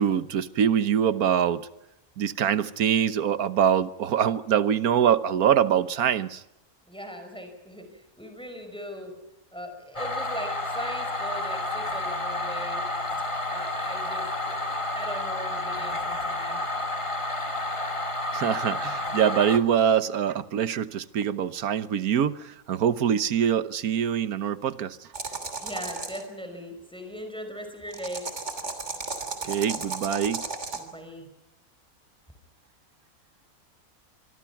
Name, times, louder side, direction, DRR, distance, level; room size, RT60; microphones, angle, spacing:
voice 1, 0.0-1.7 2.2-6.4 18.3-25.0 29.4-30.5, right 8 dB, 80° right, 1.5 m, -24 dB
voice 2, 6.9-9.1 9.5-12.9 13.5-16.9 25.6-28.3 30.7-31.3, equal, 5° left, 5.2 m, -39 dB
sound 1, 10.0-19.6, left 2 dB, 20° left, 1.9 m, -30 dB
sound 2, 25.1-26.2 27.9-30.8, right 4 dB, 50° right, 3.3 m, -34 dB
25.0 x 24.5 x 5.9 m
omnidirectional pair, 1.5 m